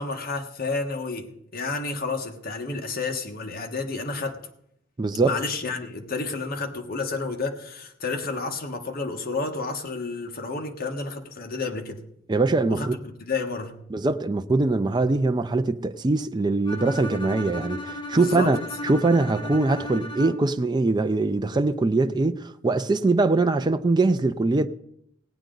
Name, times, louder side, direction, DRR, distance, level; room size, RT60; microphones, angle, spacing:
voice 1, 0.0-4.4 5.2-12.0 12.7-12.9 13.2-13.8 18.1-18.6, left 3 dB, 50° left, 1.4 m, -30 dB
voice 2, 5.0-5.3 12.3-13.0 13.9-18.6 18.8-24.7, right 3 dB, 20° right, 0.4 m, -22 dB
Bowed string instrument, 16.7-20.6, left 2 dB, 25° left, 1.3 m, -35 dB
18.0 x 9.2 x 3.9 m
head